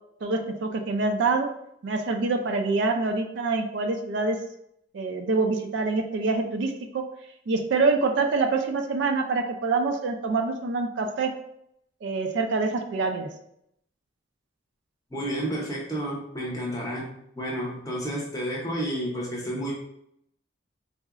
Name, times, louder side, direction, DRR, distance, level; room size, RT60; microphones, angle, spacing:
voice 1, 0.2-1.5 1.8-4.4 4.9-7.0 7.5-11.3 12.0-13.3, right 3 dB, 60° right, 4 dB, 0.3 m, -25 dB
voice 2, 15.1-19.7, right 1 dB, 20° left, -3 dB, 0.6 m, -31 dB
3.7 x 2.0 x 2.4 m, 0.75 s
head